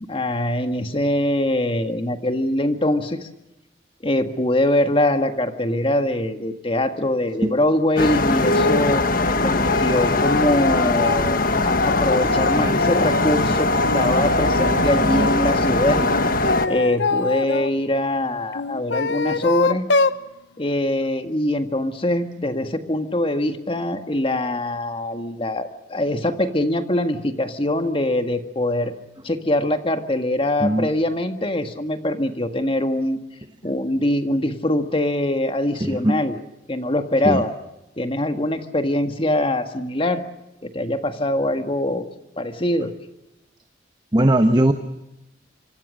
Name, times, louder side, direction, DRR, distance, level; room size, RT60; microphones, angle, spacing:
voice 1, 0.0-3.3 4.0-16.0 16.7-19.9 20.6-28.9 29.2-33.2 33.6-36.4 36.7-37.5 38.0-40.2 40.6-42.1 42.4-42.9, left 1 dB, 30° left, 8 dB, 1.8 m, -23 dB
sound 1, 8.0-16.7, left 2 dB, 50° left, 1.6 m, -21 dB
sound 2, 8.4-8.9 9.4-13.4 13.8-15.4 16.1-17.7 18.5-20.2, left 3 dB, 70° left, 0.9 m, -25 dB
voice 2, 35.8-36.2 37.2-37.4 44.1-44.7, right 1 dB, 25° right, 8 dB, 1.1 m, -19 dB
25.5 x 25.5 x 6.5 m, 0.94 s
head